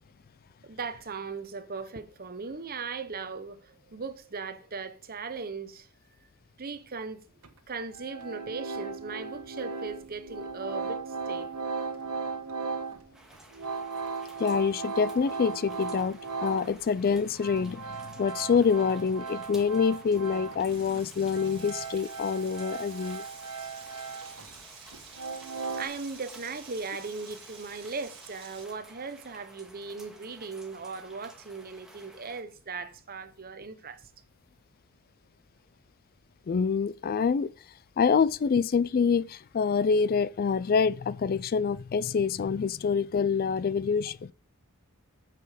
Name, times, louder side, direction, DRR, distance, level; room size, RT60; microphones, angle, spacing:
voice 1, 0.6-5.9 6.6-7.2 7.7-11.5 24.2-24.6 25.8-34.1, right 4 dB, 40° right, 1.0 m, -38 dB
sound 1, 7.4-7.5 7.9-16.8 17.1-20.7 21.0-24.6 24.9-25.8, right 4 dB, 75° right, 1.5 m, -37 dB
sound 2, 13.1-32.4, right 1 dB, ahead, 1.9 m, -54 dB
voice 2, 14.4-23.2 36.5-37.5 38.0-44.3, left 6 dB, 40° left, 0.3 m, -26 dB
Frying (food), 20.6-28.6, right 5 dB, 25° right, 3.1 m, -50 dB
9.2 x 6.8 x 5.0 m
head